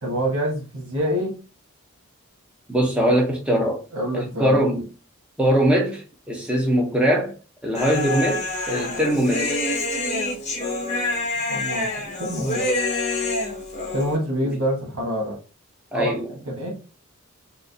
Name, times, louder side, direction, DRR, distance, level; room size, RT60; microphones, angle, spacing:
voice 1, 0.0-1.4 3.9-4.6 11.5-11.9 12.2-12.8 13.9-15.4 15.9-16.1 16.4-16.8, equal, 75° right, 1.3 m, -26 dB
voice 2, 2.7-3.8 4.1-4.8 5.4-7.3 7.6-9.5 14.4-14.6 15.9-16.2, right 1 dB, 5° right, 0.8 m, -21 dB
Human voice, 7.7-14.2, left 2 dB, 30° left, 0.8 m, -26 dB
4.4 x 2.0 x 2.7 m
head